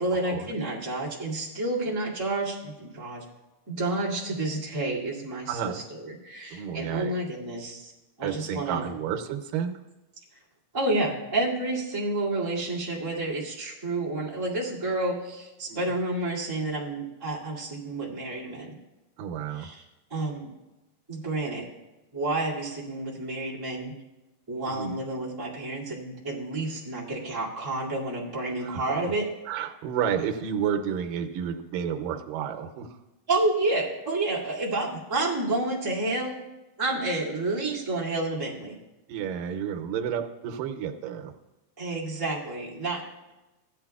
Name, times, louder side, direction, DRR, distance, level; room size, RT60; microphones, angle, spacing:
voice 1, 0.0-3.2 3.7-7.9 8.2-8.9 10.7-18.7 19.5-19.8 20.1-20.5 21.1-21.7 22.1-23.9 24.5-29.3 33.3-36.4 36.8-38.7 41.8-43.0, right 2 dB, 10° right, -7 dB, 1.6 m, -30 dB
voice 2, 5.5-5.8 6.5-7.1 8.2-9.8 15.7-15.9 19.2-19.7 24.7-25.0 28.6-29.1 29.5-33.0 39.1-41.3, right 8 dB, 85° right, 4 dB, 2.4 m, -31 dB
16.0 x 10.5 x 2.4 m, 1.0 s
omnidirectional pair, 3.9 m